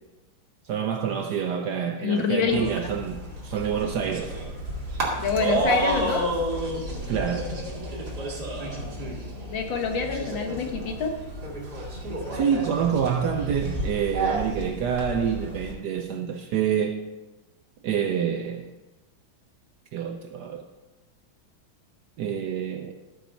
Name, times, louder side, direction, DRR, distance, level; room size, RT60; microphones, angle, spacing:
voice 1, 0.6-4.3 7.1-7.5 12.3-17.0 17.8-18.7 19.9-20.6 22.2-22.9, right 8 dB, 70° right, 1.0 m, -27 dB
voice 2, 2.0-2.7 5.2-6.3 9.5-11.1, left 5 dB, 65° left, 1.8 m, -26 dB
sound 1, 2.5-15.7, right 1 dB, 50° right, 2.6 m, -31 dB
13.0 x 7.1 x 4.4 m
omnidirectional pair, 2.3 m